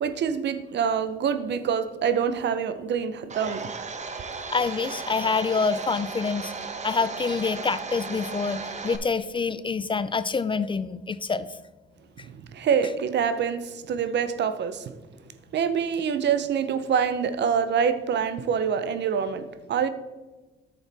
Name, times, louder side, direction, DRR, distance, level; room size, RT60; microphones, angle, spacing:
voice 1, 0.0-3.7 12.3-15.0 15.5-19.9, right 7 dB, 60° right, 0.7 m, -26 dB
Domestic sounds home sounds, 3.3-9.0, right 4 dB, 35° right, 0.9 m, -36 dB
voice 2, 4.5-6.5 6.8-11.5, left 4 dB, 25° left, 0.4 m, -26 dB
9.2 x 7.0 x 3.4 m
cardioid pair, 90°, 20 cm